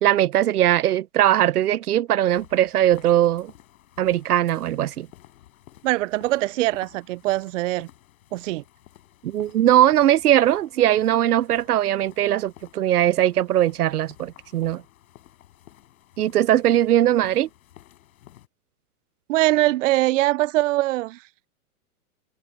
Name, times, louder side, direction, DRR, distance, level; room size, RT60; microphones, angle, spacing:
voice 1, 0.0-3.5 4.0-5.1 9.2-14.8 16.2-17.5, right 12 dB, 85° right, 1.0 m, -20 dB
sound 1, 2.3-18.5, left 13 dB, 65° left, 6.4 m, -52 dB
voice 2, 5.8-7.9 8.3-8.6 19.3-21.5, right 17 dB, 55° right, 0.5 m, -22 dB
hypercardioid pair, 140°, 44 cm